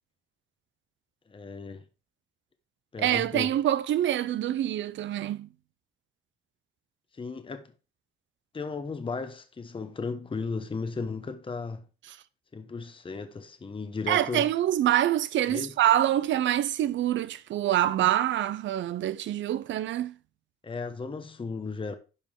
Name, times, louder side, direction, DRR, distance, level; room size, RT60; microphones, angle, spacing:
voice 1, 1.3-1.8 2.9-3.6 7.1-7.7 8.5-11.9 12.5-14.5 15.5-15.7 20.6-22.0, left 4 dB, 25° left, 1.0 m, -35 dB
voice 2, 3.0-5.5 14.1-20.1, right 12 dB, 70° right, 0.6 m, -26 dB
9.9 x 5.4 x 3.7 m
cardioid pair, 90°, 20 cm